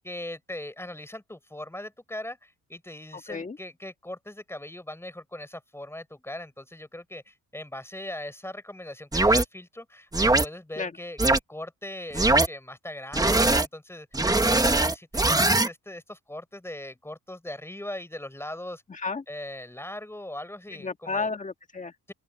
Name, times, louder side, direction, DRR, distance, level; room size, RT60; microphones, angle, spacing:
voice 1, 0.0-14.1 14.5-18.8 19.3-21.3, left 1 dB, 10° left, 5.2 m, -40 dB
voice 2, 3.1-3.6 10.8-10.9 18.9-19.2 20.7-21.9, left 4 dB, 25° left, 2.0 m, -32 dB
sound 1, 9.1-9.4 10.1-10.4 11.2-11.4 12.1-12.5 13.1-13.7 14.1-15.7, right 2 dB, 10° right, 1.4 m, -21 dB
open air
cardioid pair, 90°, 30 cm